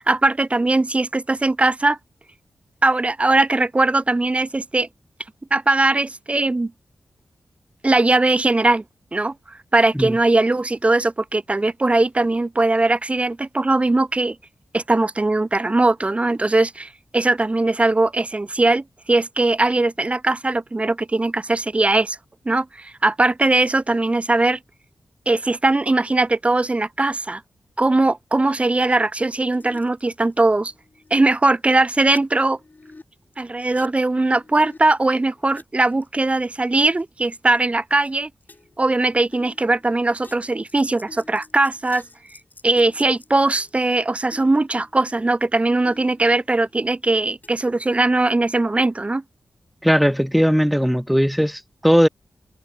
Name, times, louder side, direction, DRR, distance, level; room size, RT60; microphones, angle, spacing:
voice 1, 0.1-2.0 2.8-4.9 5.5-6.7 7.8-8.8 9.1-14.4 14.7-22.2 22.4-24.6 25.3-27.4 27.8-30.7 31.1-32.6 33.4-38.3 38.8-42.0 42.6-49.2, right 2 dB, 20° right, 0.8 m, -20 dB
sound 1, 29.5-31.5 31.8-33.0 33.3-35.6 35.9-36.5 36.9-37.7 38.0-38.1 38.4-38.9 39.3-43.9 44.3-45.4 45.9-46.8 47.4-47.7, left 3 dB, 30° left, 7.6 m, -49 dB
voice 2, 49.8-52.1, equal, ahead, 1.2 m, -18 dB
wide cardioid pair, 135°, 6 cm